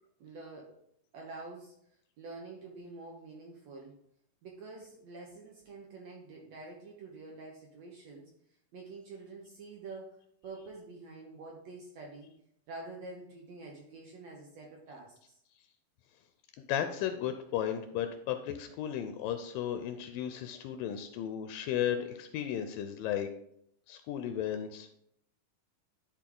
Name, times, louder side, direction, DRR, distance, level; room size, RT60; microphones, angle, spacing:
voice 1, 0.2-0.8 1.1-1.7 2.2-4.0 4.4-8.3 8.7-10.1 10.4-12.3 12.7-15.4, right 3 dB, 65° right, -1 dB, 1.7 m, -47 dB
voice 2, 16.7-23.3 23.9-25.1, left 10 dB, 80° left, 8 dB, 2.2 m, -34 dB
11.0 x 4.4 x 3.8 m, 0.71 s
omnidirectional pair, 4.1 m